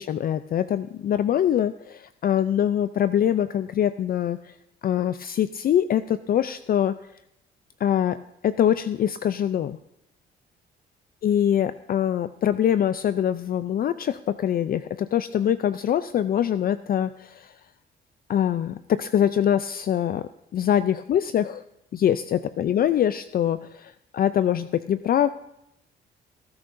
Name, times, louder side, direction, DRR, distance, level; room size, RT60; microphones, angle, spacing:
voice 1, 0.0-4.5 4.8-7.0 7.8-8.2 8.4-9.8 11.2-17.5 18.3-21.6 21.9-25.3, left 10 dB, 50° left, 13 dB, 0.4 m, -24 dB
19.0 x 11.0 x 2.6 m, 0.83 s
cardioid pair, 90°, 20 cm